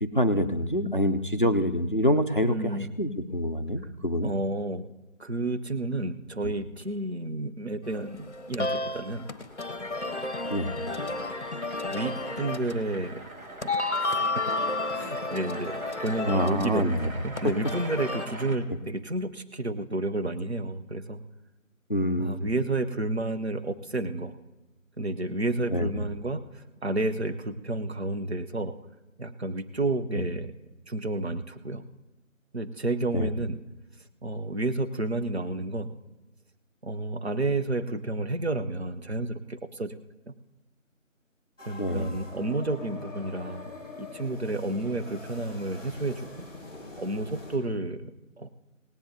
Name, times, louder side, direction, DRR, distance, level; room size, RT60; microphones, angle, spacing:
voice 1, 0.0-4.3 6.4-6.5 10.5-10.7 16.3-17.1 21.9-22.5 25.7-25.9 30.1-30.3 33.1-33.3 41.8-42.1, equal, 40° left, 8 dB, 0.5 m, -26 dB
voice 2, 2.4-2.9 4.2-4.8 5.2-9.2 11.9-13.2 13.6-13.7 14.0-14.2 14.9-21.2 22.2-24.4 25.0-28.7 29.2-30.5 30.9-31.8 32.5-33.6 34.2-35.9 36.8-39.9 40.3-40.4 41.7-43.7 44.0-46.3 47.0-48.5, right 2 dB, 50° right, 8 dB, 0.7 m, -31 dB
sound 1, 7.8-18.3, left 2 dB, 55° left, 0.9 m, -32 dB
sound 2, 9.1-18.6, right 2 dB, 85° right, 1.8 m, -44 dB
sound 3, 41.6-47.6, left 3 dB, 15° left, 2.4 m, -43 dB
18.0 x 17.5 x 2.7 m, 1.0 s
figure-of-eight pair, 170°, 41 cm